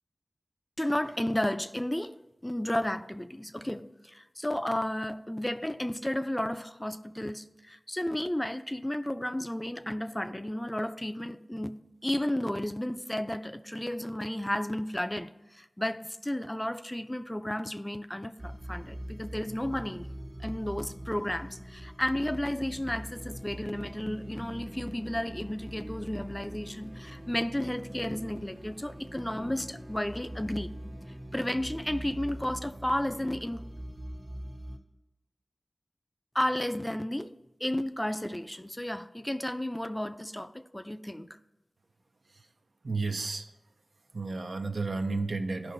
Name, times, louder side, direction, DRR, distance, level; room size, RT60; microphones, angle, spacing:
voice 1, 0.8-2.2 2.4-11.7 12.0-20.1 20.4-30.7 31.3-33.6 36.3-37.3 37.6-41.4, left 1 dB, 15° left, 0.4 m, -33 dB
sound 1, 18.4-34.8, equal, 60° right, 1.4 m, -43 dB
voice 2, 42.8-43.5 44.1-45.7, right 3 dB, 80° right, 0.6 m, -32 dB
15.0 x 5.6 x 2.6 m
wide cardioid pair, 70°, 0 cm